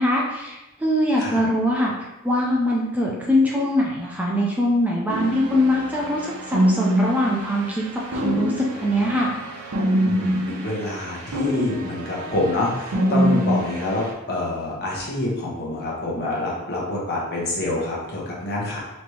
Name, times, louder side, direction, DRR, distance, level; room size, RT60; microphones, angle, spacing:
voice 1, 0.0-6.2 6.5-7.8 8.1-9.3, left 1 dB, 5° right, -3 dB, 0.5 m, -22 dB
sound 1, 5.1-14.1, equal, 75° right, 0.8 m, -25 dB
voice 2, 10.0-18.8, left 1 dB, 50° left, -4 dB, 1.2 m, -27 dB
4.2 x 3.2 x 3.2 m, 1.0 s
head